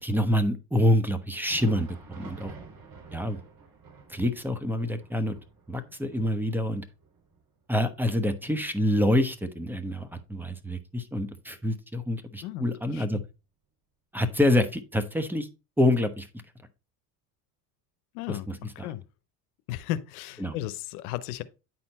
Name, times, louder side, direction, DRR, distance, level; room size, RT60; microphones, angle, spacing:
voice 1, 0.0-2.5 3.1-3.4 4.1-5.4 5.7-6.8 7.7-13.2 14.1-15.5 15.8-16.3 18.3-18.4 18.8-18.9 20.4-20.6, left 1 dB, 5° right, 1.1 m, -26 dB
Thunder, 1.2-10.7 11.0-11.2 11.9-12.1 13.1-13.2, right 4 dB, 55° right, 3.8 m, -50 dB
voice 2, 18.1-19.0 19.7-21.4, left 13 dB, 90° left, 0.8 m, -35 dB
9.4 x 4.3 x 4.2 m
supercardioid pair, 95°, 42 cm